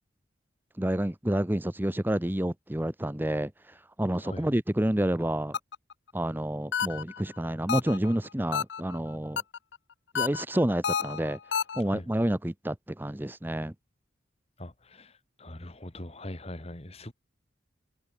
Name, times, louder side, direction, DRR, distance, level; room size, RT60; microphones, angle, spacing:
voice 1, 0.8-5.6 6.1-9.4 10.1-11.4 11.8-13.7, right 1 dB, 10° right, 0.7 m, -29 dB
sound 1, 5.5-5.9 6.7-7.2 7.7-8.1 8.5-9.0 9.4-9.8 10.1-11.8, left 7 dB, 60° left, 0.5 m, -30 dB
voice 2, 14.6-17.1, left 1 dB, 30° left, 2.0 m, -42 dB
head